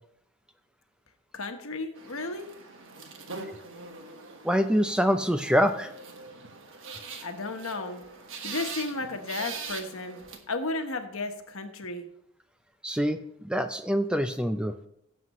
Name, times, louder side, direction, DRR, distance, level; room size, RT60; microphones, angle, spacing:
voice 1, 1.3-2.5 7.2-8.0 8.4-10.2 10.5-12.0, left 2 dB, 65° left, 6 dB, 1.2 m, -33 dB
sound 1, 2.0-10.4, right 4 dB, 60° right, 1.4 m, -42 dB
voice 2, 4.4-5.9 12.8-14.7, equal, 5° right, 8 dB, 0.4 m, -25 dB
17.0 x 7.6 x 3.1 m, 0.72 s
head